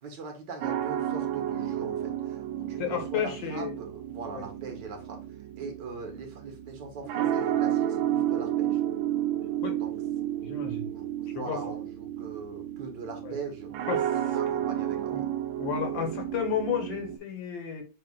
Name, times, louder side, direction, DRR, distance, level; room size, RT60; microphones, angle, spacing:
voice 1, 0.0-8.8 9.8-9.9 10.4-10.5 10.9-13.7 14.1-15.3, right 4 dB, 60° right, 3 dB, 1.8 m, -41 dB
sound 1, 0.6-17.2, right 11 dB, 75° right, 1.3 m, -31 dB
voice 2, 2.8-3.7 4.3-4.5 9.6-9.8 10.4-10.9 11.3-11.6 13.2-13.3 13.9-14.1 15.1-15.2 15.6-17.8, left 7 dB, 65° left, 3 dB, 1.7 m, -32 dB
6.8 x 3.2 x 2.3 m, 0.33 s
omnidirectional pair, 2.3 m